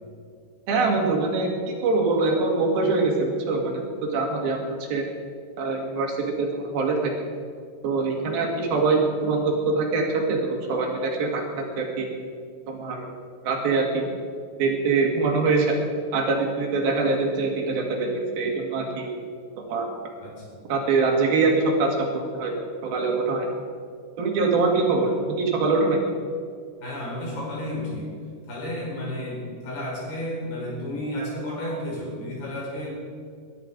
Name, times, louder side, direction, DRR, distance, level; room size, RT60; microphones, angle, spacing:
voice 1, 0.7-3.8 4.1-4.6 4.9-5.0 5.6-7.3 7.8-12.1 12.7-13.1 13.4-14.1 14.6-15.8 16.1-19.1 19.7-19.9 20.7-22.5 22.8-23.5 24.2-26.0, right 3 dB, 70° right, 1 dB, 4.0 m, -23 dB
voice 2, 20.2-20.7 25.1-25.2 26.8-28.1 28.5-32.9, left 1 dB, 85° left, -4 dB, 7.2 m, -32 dB
20.5 x 11.0 x 5.3 m, 2.2 s
omnidirectional pair, 4.4 m